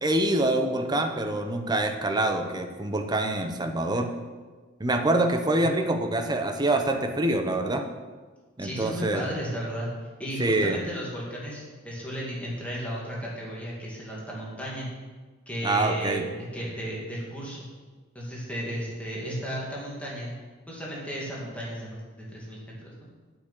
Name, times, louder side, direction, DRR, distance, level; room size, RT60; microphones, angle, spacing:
voice 1, 0.0-4.1 4.8-7.9 8.6-9.3 10.4-10.8 15.6-16.2, right 2 dB, 20° right, 5 dB, 0.9 m, -25 dB
voice 2, 8.6-9.9 10.2-14.9 15.5-17.6 18.1-20.3 20.7-23.1, equal, 5° left, -5 dB, 2.3 m, -34 dB
8.3 x 6.3 x 8.3 m, 1.4 s
head